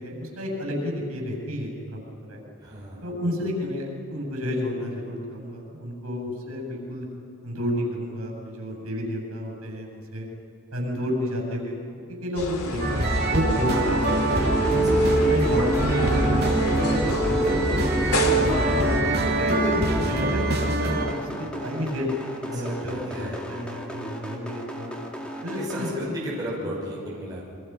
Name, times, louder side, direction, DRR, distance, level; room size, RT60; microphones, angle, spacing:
voice 1, 0.0-2.0 2.3-2.4 3.0-7.1 7.4-10.3 10.7-11.8 12.2-13.7 14.0-14.5 15.3-17.8 18.3-22.1 22.5-25.0 25.4-26.0 26.6-26.7, left 1 dB, 75° right, 1 dB, 8.0 m, -31 dB
voice 2, 2.6-3.1 14.8-15.3 22.4-23.4 25.5-27.4, right 1 dB, 15° right, -6 dB, 5.9 m, -35 dB
sound 1, 12.4-19.0, left 2 dB, 85° left, 2.6 m, -30 dB
sound 2, 12.8-21.2, right 2 dB, 45° right, 3.0 m, -23 dB
sound 3, 13.7-25.9, equal, 5° left, 2.3 m, -31 dB
28.5 x 24.5 x 6.0 m, 2.8 s
head